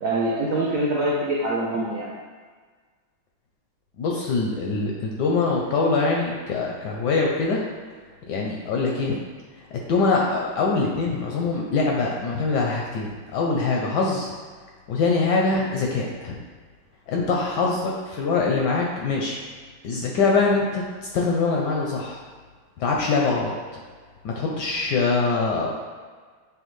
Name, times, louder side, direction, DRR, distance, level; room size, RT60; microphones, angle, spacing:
voice 1, 0.0-2.1, right 1 dB, 80° right, -5 dB, 0.7 m, -24 dB
voice 2, 4.0-7.6 8.3-9.2 9.7-14.3 14.9-16.4 17.1-19.4 19.8-22.2 22.8-23.5 24.2-25.7, left 4 dB, 75° left, -2 dB, 1.0 m, -23 dB
6.4 x 2.2 x 3.1 m, 1.5 s
omnidirectional pair, 2.2 m